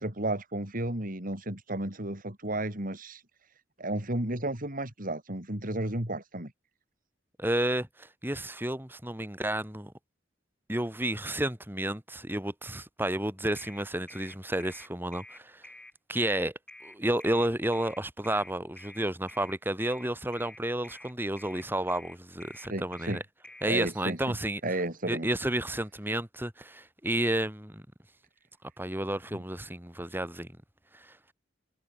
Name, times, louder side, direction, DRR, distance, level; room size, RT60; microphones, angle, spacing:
voice 1, 0.0-3.2 3.8-6.5 22.7-23.2 23.6-24.4 24.6-25.3 29.3-29.4, right 1 dB, 45° right, 4.6 m, -33 dB
voice 2, 7.4-9.9 10.7-15.6 16.1-16.5 16.8-23.2 23.6-24.6 25.1-27.8 28.8-30.5 30.9-31.1, right 1 dB, 10° right, 4.5 m, -31 dB
sound 1, 13.6-23.7, left 1 dB, 5° left, 6.0 m, -49 dB
head